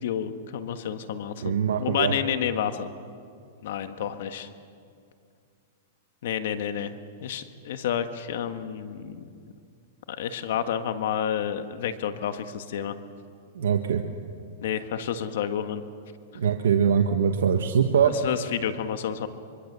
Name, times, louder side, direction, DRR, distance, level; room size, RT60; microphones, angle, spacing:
voice 1, 0.0-2.9 3.6-4.5 6.2-6.9 7.2-9.2 10.1-13.0 14.6-15.8 18.0-19.3, left 9 dB, 70° left, 9 dB, 1.6 m, -30 dB
voice 2, 1.4-2.1 13.5-14.0 16.3-18.1, right 7 dB, 85° right, 4 dB, 1.4 m, -22 dB
25.0 x 24.5 x 6.9 m, 2.3 s
hypercardioid pair, 135°, 0 cm